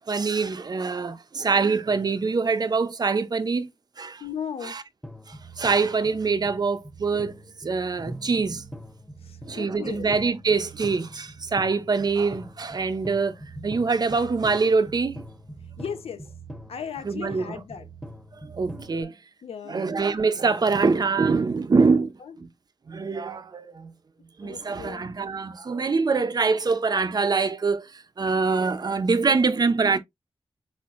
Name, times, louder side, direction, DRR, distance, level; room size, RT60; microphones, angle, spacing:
voice 1, 0.1-3.7 4.0-4.2 4.6-4.8 5.3-7.4 7.6-8.6 9.4-13.4 13.6-15.2 17.0-17.6 18.4-19.1 19.7-22.5 22.9-23.9 24.4-30.0, right 4 dB, 45° right, 0.6 m, -24 dB
voice 2, 4.2-4.8 9.2-10.1 15.8-16.3 16.7-17.9 19.4-19.9 22.2-22.4 24.4-25.1, left 7 dB, 85° left, 0.7 m, -36 dB
sound 1, 5.0-19.0, right 1 dB, ahead, 1.0 m, -43 dB
4.3 x 4.2 x 2.5 m
wide cardioid pair, 105°, 10 cm